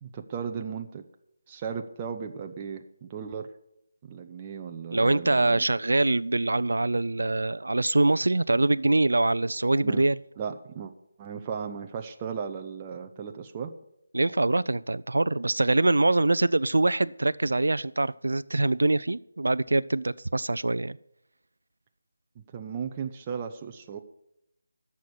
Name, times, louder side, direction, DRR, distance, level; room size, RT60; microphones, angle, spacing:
voice 1, 0.0-1.0 1.5-3.5 4.0-5.6 9.8-10.1 10.4-10.9 11.2-13.7 22.4-24.0, right 6 dB, 20° right, 0.7 m, -36 dB
voice 2, 4.9-10.2 14.1-21.0, right 2 dB, 85° right, 0.4 m, -24 dB
11.5 x 7.0 x 8.0 m
figure-of-eight pair, 165°, 0 cm